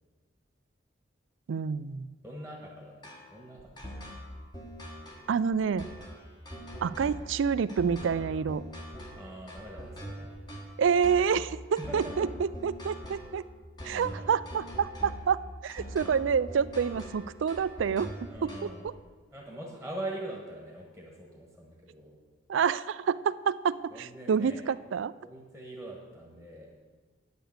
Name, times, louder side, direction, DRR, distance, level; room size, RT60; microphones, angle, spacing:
voice 1, 1.5-2.1 5.3-5.9 6.8-8.6 10.8-13.5 13.8-18.6 18.8-18.9 22.5-25.1, right 6 dB, 85° right, 17 dB, 0.4 m, -28 dB
voice 2, 2.2-4.2 9.2-10.4 11.8-12.0 13.9-14.4 18.3-19.0 19.3-22.1 23.9-24.7 25.2-26.7, right 1 dB, ahead, -2 dB, 1.5 m, -43 dB
sound 1, 3.0-18.9, equal, 20° left, 1.5 m, -43 dB
9.1 x 6.7 x 7.8 m, 1.4 s
head